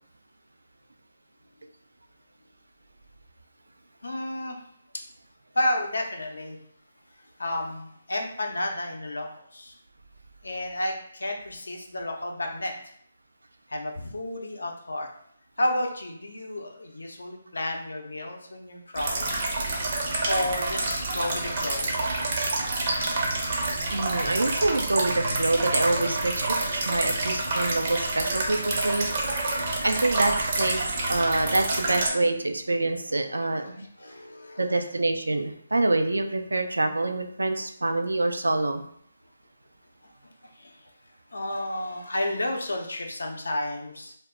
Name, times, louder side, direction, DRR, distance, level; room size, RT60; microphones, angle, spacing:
voice 1, 4.0-4.6 5.5-6.6 7.4-9.8 10.4-12.7 13.7-15.1 15.6-19.3 20.3-21.9 31.9-32.2 33.3-34.8 40.4-40.9 41.3-44.1, left 1 dB, 80° left, 2 dB, 0.5 m, -31 dB
sound 1, 18.9-32.1, right 2 dB, 40° right, 0.6 m, -28 dB
voice 2, 23.9-29.1 29.8-30.8 31.1-33.9 34.6-38.8, right 2 dB, 85° right, 6 dB, 0.3 m, -26 dB
2.0 x 2.0 x 3.5 m, 0.68 s
figure-of-eight pair, 150°, 0 cm